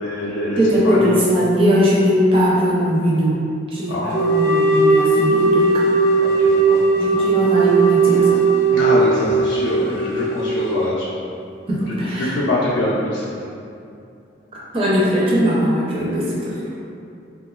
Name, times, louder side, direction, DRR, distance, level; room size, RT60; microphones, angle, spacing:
voice 1, 0.0-1.2 3.9-4.3 6.2-6.8 8.7-11.1 11.9-13.2, left 1 dB, 80° left, -5 dB, 0.4 m, -24 dB
voice 2, 0.6-3.4 3.7-5.9 6.9-8.4 11.7-12.3 14.7-16.6, equal, 30° right, -6 dB, 0.5 m, -19 dB
sound 1, 4.1-10.9, right 3 dB, 60° right, 0.8 m, -17 dB
3.5 x 2.2 x 2.3 m, 2.5 s
head